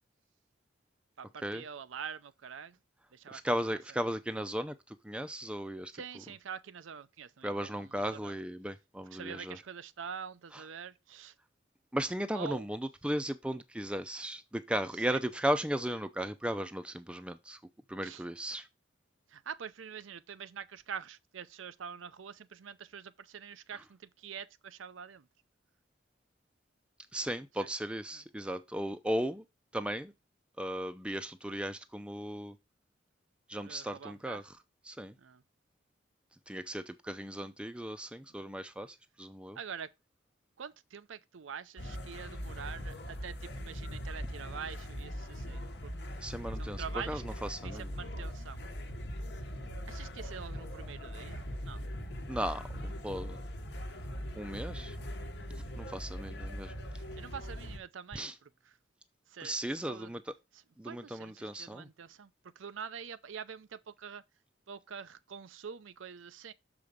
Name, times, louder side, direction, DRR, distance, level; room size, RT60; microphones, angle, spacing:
voice 1, 1.2-2.8 3.1-3.4 5.9-7.7 8.1-8.3 9.1-11.3 12.3-12.7 15.1-15.2 18.0-18.2 19.3-25.3 27.6-27.7 28.1-28.2 33.6-34.4 35.2-35.4 38.3-38.4 39.5-39.9 40.6-45.9 46.6-47.2 47.6-48.7 49.9-51.8 57.1-58.5 59.3-60.1 60.8-62.3 62.6-64.2 64.7-66.5, right 7 dB, 85° right, 0.5 m, -45 dB
voice 2, 3.3-5.9 7.4-9.6 10.5-10.6 11.9-17.6 17.9-18.7 27.1-29.4 29.7-30.1 30.6-32.6 33.5-34.6 34.8-35.2 36.5-39.6 45.5-45.6 46.2-47.9 52.3-53.4 54.4-55.0 55.5-56.7 58.1-58.4 59.4-60.2 60.8-61.9, equal, 5° right, 0.5 m, -36 dB
sound 1, 41.8-57.8, equal, 60° left, 1.1 m, -41 dB
6.8 x 4.9 x 5.2 m
head